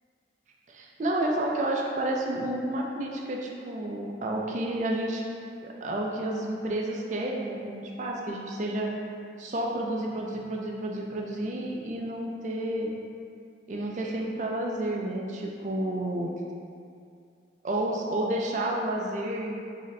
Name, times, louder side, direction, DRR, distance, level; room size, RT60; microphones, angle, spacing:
voice 1, 0.7-5.2 5.6-8.9 9.4-12.9 13.7-16.3 17.6-19.6, right 1 dB, 40° right, -1 dB, 0.4 m, -30 dB
3.7 x 2.1 x 4.1 m, 2.4 s
head